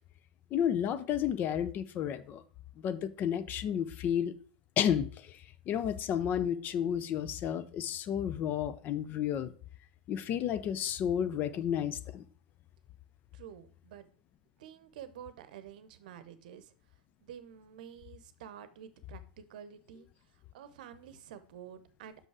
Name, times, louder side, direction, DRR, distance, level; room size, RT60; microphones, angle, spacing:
voice 1, 0.5-2.4 2.8-4.3 4.8-5.1 5.7-9.5 10.1-12.2, left 9 dB, 40° left, 0.6 m, -31 dB
voice 2, 13.3-14.1 14.6-16.7 17.2-20.1 20.5-22.3, right 9 dB, 65° right, 0.8 m, -49 dB
6.2 x 5.4 x 4.7 m
hypercardioid pair, 95°, 5 cm